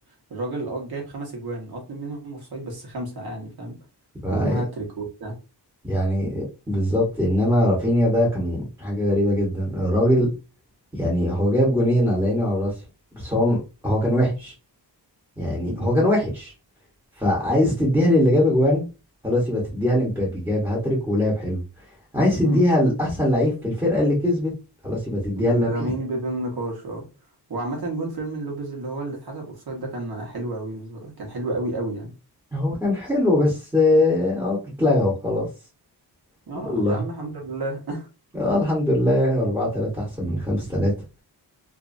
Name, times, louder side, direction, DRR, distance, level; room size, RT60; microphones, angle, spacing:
voice 1, 0.3-3.8 4.3-5.3 15.6-16.1 22.4-22.6 25.4-27.1 27.5-32.1 36.5-38.1, right 2 dB, 60° right, 1.3 m, -31 dB
voice 2, 4.2-4.5 5.8-10.3 10.9-12.7 13.1-13.6 13.8-14.5 15.4-16.5 17.2-18.9 19.2-21.6 22.1-24.5 24.8-25.7 32.5-35.5 36.6-37.0 38.3-40.9, left 1 dB, 5° right, 1.2 m, -21 dB
2.8 x 2.6 x 2.6 m
wide cardioid pair, 105°, 41 cm